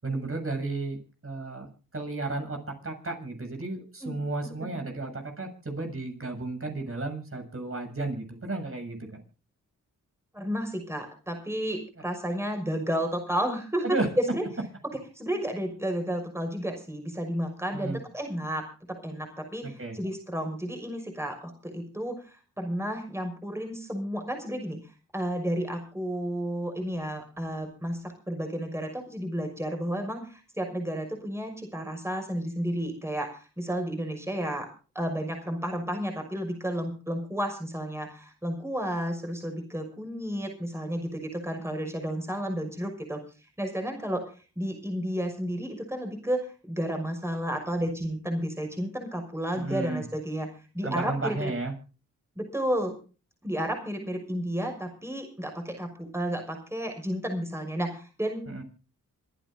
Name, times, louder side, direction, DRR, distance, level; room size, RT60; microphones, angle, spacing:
voice 1, 0.0-1.7 1.9-2.6 2.8-9.1 13.8-14.1 17.7-18.0 19.6-20.0 49.5-50.0 50.8-51.7 58.5-58.6, right 2 dB, 40° right, 3 dB, 7.2 m, -33 dB
voice 2, 10.3-14.0 14.3-14.4 15.1-24.8 25.1-34.7 34.9-43.2 43.6-44.3 44.6-50.5 50.7-51.5 52.4-53.0 53.4-58.6, equal, 5° right, 3 dB, 5.9 m, -32 dB
27.0 x 9.4 x 3.9 m, 0.35 s
supercardioid pair, 45°, 36 cm